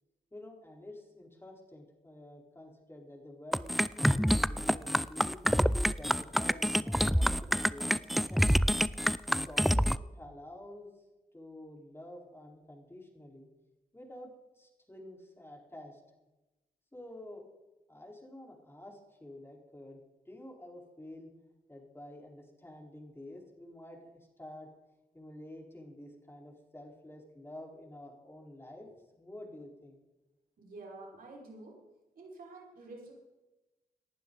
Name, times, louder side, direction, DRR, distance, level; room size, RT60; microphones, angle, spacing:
voice 1, 0.3-5.4 6.0-8.5 9.2-10.9 11.3-13.5 13.9-14.3 14.5-16.0 16.9-17.4 17.9-20.0 20.3-21.3 21.7-24.7 25.1-28.9 29.2-30.0, left 1 dB, 15° left, 0 dB, 4.3 m, -49 dB
sound 1, 3.5-10.0, equal, ahead, 0.4 m, -27 dB
voice 2, 30.6-31.8 32.2-33.1, right 2 dB, 60° right, -3 dB, 5.3 m, -48 dB
18.5 x 11.5 x 4.0 m, 1.0 s
cardioid pair, 60°, 16 cm